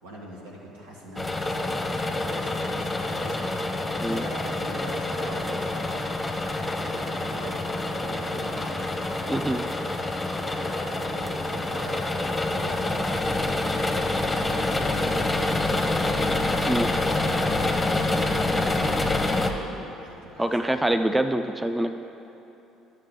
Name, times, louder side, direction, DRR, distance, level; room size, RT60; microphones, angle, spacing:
voice 1, 0.0-3.6 4.1-6.0 6.5-9.5 10.3-16.3 16.9-21.1, right 1 dB, 85° right, -3 dB, 1.3 m, -43 dB
sound 1, 1.2-19.5, left 2 dB, 15° left, 0.8 m, -27 dB
voice 2, 9.3-9.6 16.7-16.9 20.4-21.9, right 1 dB, 10° right, 7 dB, 0.4 m, -25 dB
11.0 x 6.6 x 3.8 m, 3.0 s
hypercardioid pair, 60°, 0 cm